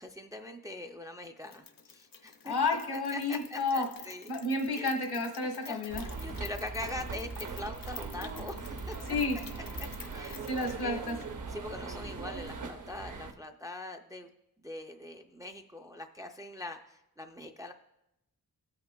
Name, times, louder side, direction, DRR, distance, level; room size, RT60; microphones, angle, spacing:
voice 1, 0.0-2.6 3.1-4.3 4.7-4.9 5.4-5.8 6.2-9.0 9.8-11.0 11.5-14.3 14.6-17.7, left 2 dB, 10° right, 5 dB, 0.3 m, -42 dB
Rain, 1.5-11.3, left 6 dB, 60° left, 0.7 m, -50 dB
voice 2, 2.4-3.9 4.3-6.1 9.1-9.4 10.4-11.2, left 3 dB, 80° left, 2 dB, 1.3 m, -31 dB
sound 1, 5.9-13.3, right 4 dB, 55° right, 0.7 m, -40 dB
15.0 x 5.7 x 2.2 m, 0.86 s
wide cardioid pair, 145°, 38 cm